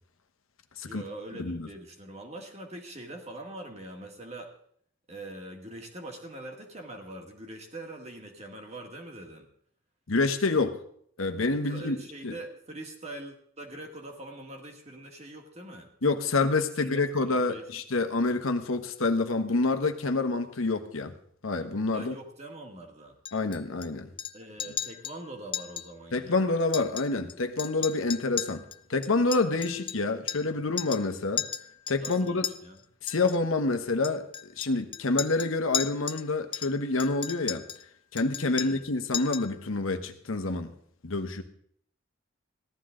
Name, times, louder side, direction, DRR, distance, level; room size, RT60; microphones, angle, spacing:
voice 1, 0.9-4.5 5.1-9.5 10.5-10.7 11.6-15.9 16.8-17.6 21.9-23.2 24.3-26.5 32.0-32.8 38.6-38.8, right 1 dB, 30° right, 2 dB, 1.8 m, -43 dB
voice 2, 10.1-10.7 11.2-12.0 12.2-12.3 16.0-21.1 21.4-22.1 23.3-24.1 26.1-28.6 28.9-31.4 31.9-32.4 33.0-37.6 38.1-40.7 41.0-41.4, left 3 dB, 85° left, 7 dB, 1.1 m, -27 dB
Chink clink, 23.3-23.9 24.2-24.3 24.6-25.2 25.5-25.9 26.1-26.2 26.6-27.3 27.6-30.5 30.8-31.1 31.4-32.5 33.1-33.4 34.0-36.2 36.5-37.8 38.2-38.9 39.1-39.5, left 9 dB, 25° left, 0.4 m, -35 dB
16.0 x 12.0 x 3.8 m, 0.64 s
head